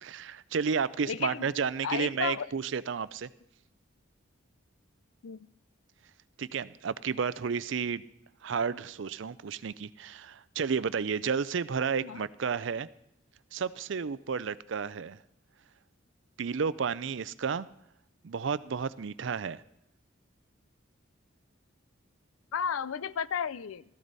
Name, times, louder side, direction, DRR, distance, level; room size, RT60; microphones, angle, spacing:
voice 1, 0.0-3.3 6.4-8.0 8.4-12.9 13.5-15.2 16.4-17.7 18.2-19.6, right 6 dB, 65° right, 17 dB, 0.5 m, -32 dB
voice 2, 1.1-1.4 1.8-2.5 5.2-5.4 12.0-12.2 22.5-23.8, left 7 dB, 90° left, 17 dB, 0.5 m, -33 dB
16.0 x 14.0 x 4.1 m, 0.80 s
head